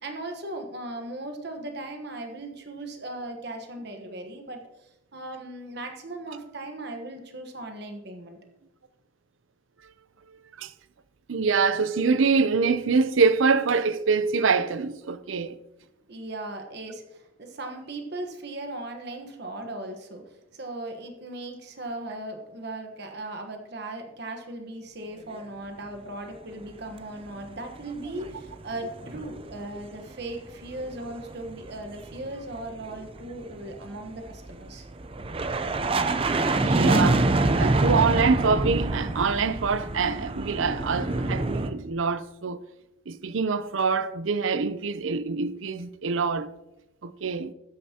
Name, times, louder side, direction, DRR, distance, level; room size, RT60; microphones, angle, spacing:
voice 1, 0.0-8.4 16.1-34.9, right 2 dB, 55° right, 1.2 m, -38 dB
voice 2, 11.3-15.5 36.6-37.3 37.6-42.6 43.1-46.5 47.0-47.5, right 4 dB, 75° right, 0.6 m, -25 dB
sound 1, 27.6-28.5 28.8-29.7 29.9-41.7, right 2 dB, 30° right, 0.6 m, -26 dB
12.5 x 9.4 x 2.9 m
head